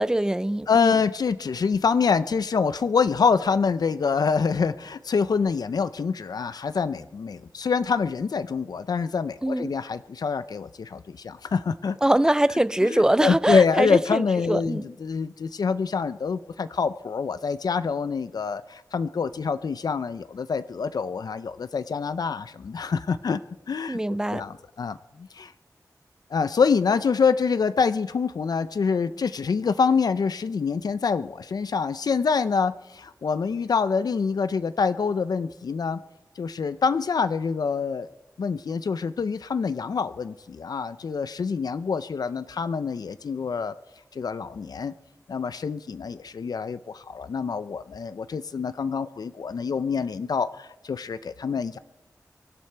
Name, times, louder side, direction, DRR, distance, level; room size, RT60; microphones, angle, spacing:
voice 1, 0.0-0.9 9.4-9.7 12.0-14.9 23.9-24.4, right 1 dB, 10° right, 0.4 m, -23 dB
voice 2, 0.7-12.0 12.8-23.4 23.7-24.0 24.3-25.5 26.3-36.0 36.4-38.1 38.4-43.7 44.1-44.9 45.3-51.8, left 5 dB, 90° left, 0.5 m, -26 dB
24.0 x 12.0 x 4.5 m
wide cardioid pair, 95°, 7 cm